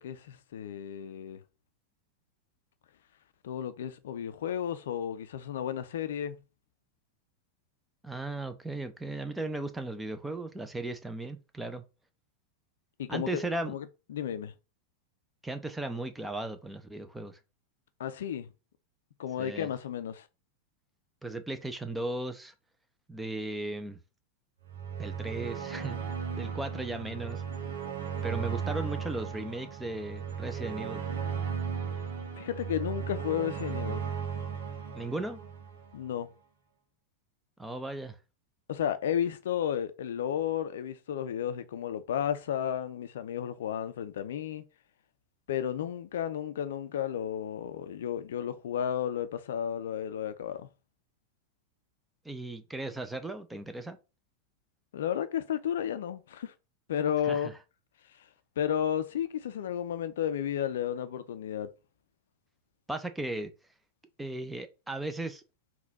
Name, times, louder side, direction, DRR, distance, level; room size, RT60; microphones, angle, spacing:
voice 1, 0.0-1.4 3.4-6.4 13.0-14.5 18.0-18.5 19.2-20.3 32.4-34.1 35.9-36.3 38.7-44.6 45.5-50.7 54.9-56.5 56.9-57.5 58.6-61.7, left 9 dB, 60° left, 0.4 m, -33 dB
voice 2, 8.0-11.8 13.1-13.7 15.4-17.4 19.4-19.7 21.2-22.5 23.1-24.0 25.0-26.0 26.3-27.4 28.2-31.0 34.9-35.4 37.6-38.1 52.2-54.0 57.2-57.5 62.9-63.5 64.2-65.4, right 2 dB, 5° right, 0.5 m, -36 dB
sound 1, 24.7-36.0, right 7 dB, 65° right, 1.3 m, -36 dB
3.9 x 2.3 x 3.9 m
figure-of-eight pair, 90°, 0 cm